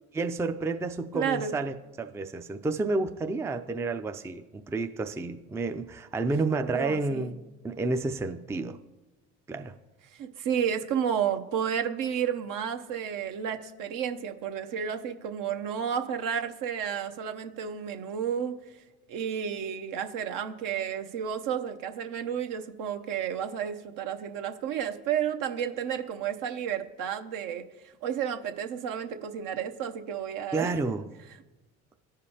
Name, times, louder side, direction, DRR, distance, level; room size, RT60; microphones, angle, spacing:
voice 1, 0.1-8.8 9.5-9.7 30.5-31.0, right 3 dB, 10° right, 6 dB, 0.4 m, -30 dB
voice 2, 1.1-1.6 6.7-7.3 10.1-18.5 19.1-27.6 28.0-30.7, right 8 dB, 60° right, 6 dB, 0.8 m, -31 dB
15.0 x 5.1 x 2.8 m, 1.1 s
hypercardioid pair, 60°, 36 cm